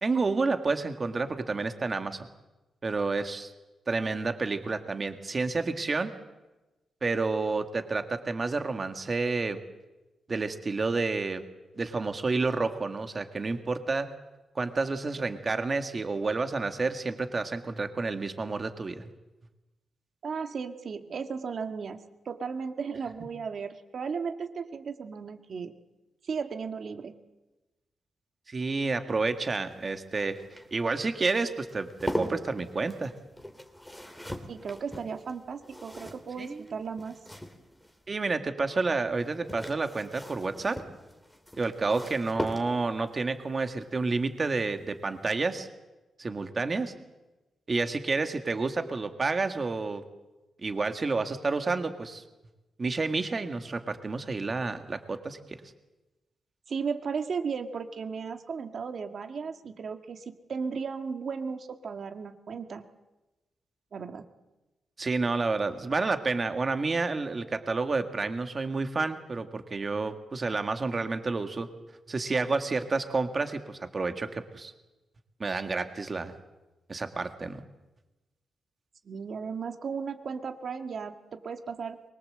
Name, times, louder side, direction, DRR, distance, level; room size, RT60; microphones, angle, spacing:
voice 1, 0.0-2.3 2.8-3.5 3.9-6.1 7.0-9.6 10.3-11.4 11.8-14.1 14.6-19.0 28.5-30.4 30.7-33.1 36.4-36.6 38.1-40.8 41.6-45.7 46.2-46.9 47.7-50.0 50.6-52.2 52.8-55.4 65.0-71.7 72.1-74.7 75.4-76.3 76.9-77.6, right 3 dB, 30° right, 7 dB, 1.9 m, -30 dB
voice 2, 20.2-25.7 26.2-27.2 34.5-37.1 56.7-62.9 63.9-64.2 79.0-82.0, right 5 dB, 50° right, 7 dB, 1.8 m, -35 dB
sound 1, 29.2-38.0 39.1-43.1 44.7-45.0 45.3-45.4, equal, 5° left, 2.7 m, -40 dB
23.5 x 22.5 x 7.8 m, 1.1 s
wide cardioid pair, 135°, 0 cm